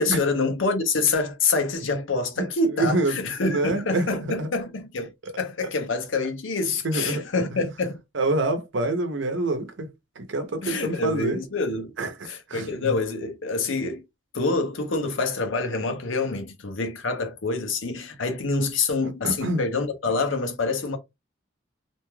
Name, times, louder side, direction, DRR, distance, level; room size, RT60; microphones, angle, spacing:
voice 1, 0.0-5.1 5.4-8.0 10.6-11.9 12.3-14.0 14.3-21.0, left 3 dB, 85° left, 0.8 m, -26 dB
voice 2, 2.7-3.2 3.4-4.5 5.2-5.3 6.8-7.3 7.5-7.6 8.1-9.9 10.2-11.4 12.0-12.9 19.2-19.6, right 2 dB, 75° right, 0.8 m, -26 dB
2.7 x 2.2 x 3.1 m
head